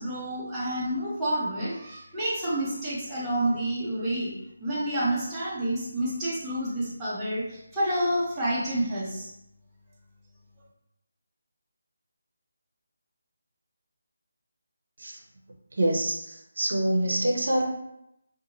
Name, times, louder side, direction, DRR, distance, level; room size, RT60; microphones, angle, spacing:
voice 1, 0.0-4.3 4.6-9.3, right 1 dB, 10° right, -10 dB, 0.6 m, -29 dB
voice 2, 15.7-17.6, right 1 dB, 65° right, 0 dB, 0.6 m, -26 dB
2.5 x 2.5 x 2.9 m, 0.83 s
figure-of-eight pair, 170°, 0 cm